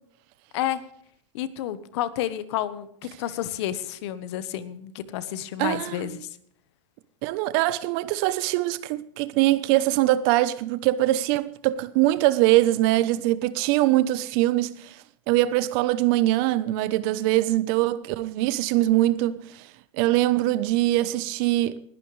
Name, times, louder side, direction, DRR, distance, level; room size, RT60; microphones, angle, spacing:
voice 1, 1.3-6.3, left 12 dB, 60° left, 1.3 m, -30 dB
voice 2, 5.6-6.1 7.2-14.9 15.3-19.5 19.9-21.8, right 16 dB, 50° right, 0.9 m, -22 dB
20.0 x 11.5 x 3.3 m
supercardioid pair, 135°, 16 cm